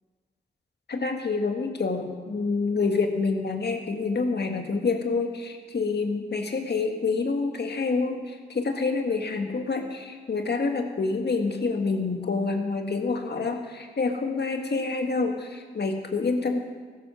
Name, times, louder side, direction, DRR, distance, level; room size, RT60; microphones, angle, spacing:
voice 1, 0.9-16.6, left 4 dB, 65° left, 4 dB, 1.9 m, -27 dB
16.0 x 12.5 x 6.3 m, 1.5 s
cardioid pair, 45°, 18 cm